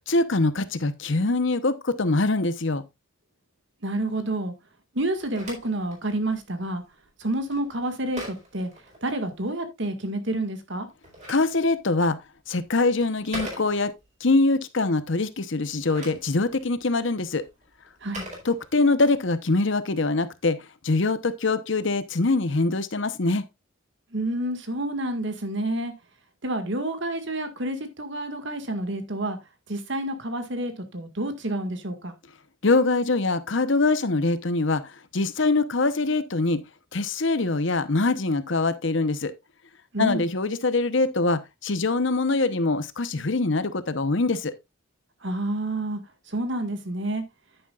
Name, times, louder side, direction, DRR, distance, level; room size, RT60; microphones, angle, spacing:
voice 1, 0.1-2.8 11.3-12.2 12.5-13.9 14.2-17.4 18.4-20.6 20.8-23.4 32.6-34.8 35.1-36.6 36.9-39.3 40.0-44.5, left 3 dB, 60° left, 0.9 m, -23 dB
voice 2, 3.8-4.5 4.9-6.8 7.2-8.7 9.0-10.9 18.0-18.2 24.1-25.9 26.4-29.4 29.7-32.1 39.9-40.2 45.2-46.0 46.3-47.2, right 1 dB, 60° right, 1.9 m, -29 dB
Telephone, 5.0-9.5 10.7-14.2 15.6-19.2, equal, 35° right, 4.5 m, -43 dB
10.0 x 9.6 x 2.4 m
head